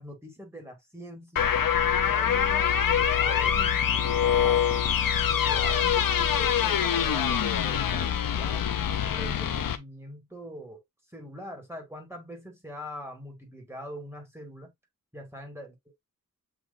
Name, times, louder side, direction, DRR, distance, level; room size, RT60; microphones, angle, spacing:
voice 1, 0.0-1.5 2.0-4.8 5.3-8.7 9.0-10.8 11.1-14.7 15.1-15.9, equal, 5° right, 1.9 m, -43 dB
sound 1, 1.4-9.8, left 8 dB, 80° left, 0.6 m, -24 dB
7.4 x 2.8 x 2.5 m
wide cardioid pair, 70°, 33 cm